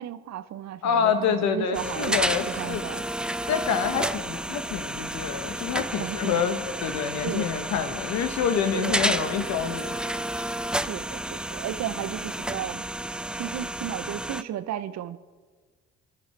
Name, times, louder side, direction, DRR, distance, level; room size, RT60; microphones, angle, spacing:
voice 1, 0.0-2.2 2.5-3.0 3.9-4.2 5.9-6.4 7.2-7.5 8.8-9.0 10.9-12.8 13.4-15.2, right 11 dB, 65° right, 14 dB, 0.9 m, -34 dB
voice 2, 0.8-2.9 3.5-10.0, left 7 dB, 70° left, 7 dB, 1.9 m, -27 dB
sound 1, 1.7-14.4, right 1 dB, 5° right, 0.5 m, -31 dB
26.5 x 11.5 x 4.6 m, 1.5 s
supercardioid pair, 75°, 29 cm